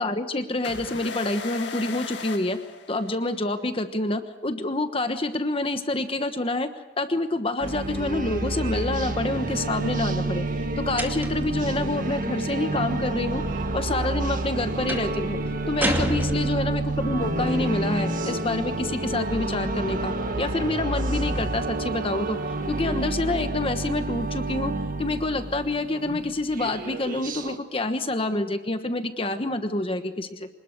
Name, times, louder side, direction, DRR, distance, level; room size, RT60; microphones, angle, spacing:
voice 1, 0.0-2.6 2.9-6.7 7.0-10.4 10.8-13.4 13.7-15.4 15.7-22.4 22.7-24.7 25.0-30.5, left 2 dB, 30° left, 8 dB, 1.2 m, -27 dB
sound 1, 0.6-3.4, left 5 dB, 85° left, 2.0 m, -37 dB
sound 2, 7.6-27.6, right 2 dB, 50° right, 1.6 m, -29 dB
sound 3, 11.0-11.6 14.9-15.2 15.8-16.9, right 1 dB, 10° right, 2.4 m, -28 dB
26.0 x 20.0 x 6.5 m, 0.97 s
head